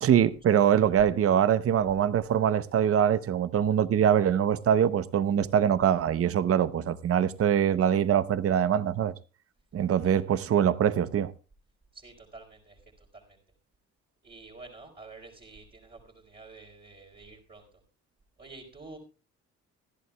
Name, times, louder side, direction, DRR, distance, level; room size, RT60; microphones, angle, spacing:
voice 1, 0.0-9.1 9.7-11.3, right 9 dB, 50° right, 0.8 m, -23 dB
voice 2, 11.9-13.4 14.2-17.7 18.4-19.0, right 3 dB, 30° right, 3.6 m, -49 dB
25.5 x 11.0 x 2.2 m
cardioid pair, 90°, 30 cm